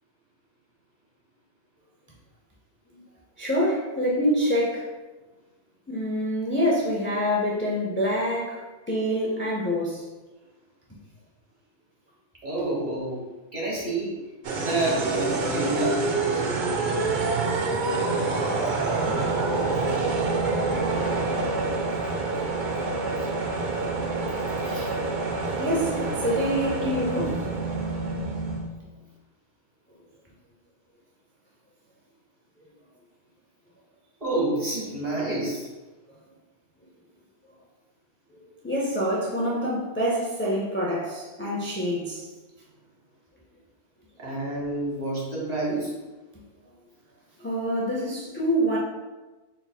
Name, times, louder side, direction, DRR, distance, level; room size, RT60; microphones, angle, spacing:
voice 1, 3.4-4.9 5.9-10.0 25.6-27.4 38.6-42.2 47.4-48.8, equal, 20° left, -5 dB, 0.3 m, -26 dB
voice 2, 12.4-13.2 13.5-14.1 14.6-16.0 19.1-19.3 19.8-20.2 24.5-24.9 25.9-26.0 34.2-35.7 44.2-45.9, right 2 dB, 35° right, -5 dB, 1.2 m, -29 dB
sound 1, 14.4-28.7, right 3 dB, 55° right, 0.6 m, -27 dB
4.1 x 3.9 x 2.2 m, 1.2 s
omnidirectional pair, 1.2 m